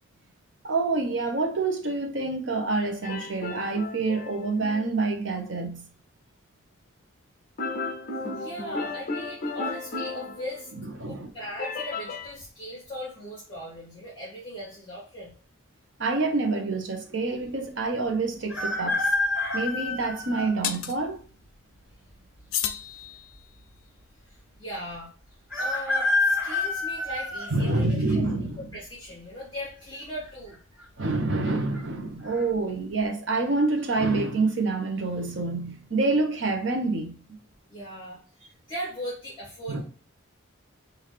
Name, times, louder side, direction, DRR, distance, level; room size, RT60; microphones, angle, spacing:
voice 1, 0.6-5.8 11.0-11.3 16.0-19.1 19.5-21.2 27.5-28.6 31.0-37.2 39.7-39.8, right 3 dB, 65° right, 0.9 m, -27 dB
sound 1, 3.0-4.9 7.6-10.9 11.6-12.3, left 3 dB, 45° left, 0.6 m, -34 dB
voice 2, 8.3-15.3 24.2-25.1 25.6-28.2 28.7-30.6 37.7-39.8, equal, 25° left, 1.9 m, -38 dB
sound 2, 18.5-20.5 21.2-21.3 22.4-23.0 23.3-23.4 23.6-23.7 25.5-28.1 28.6-29.0 30.2-30.5 30.8-30.9 31.4-31.8 32.3-32.4, left 3 dB, 5° right, 2.1 m, -27 dB
sound 3, 18.7-18.8 20.6-21.0 22.5-23.6, left 10 dB, 85° left, 0.5 m, -32 dB
5.9 x 2.6 x 3.3 m
head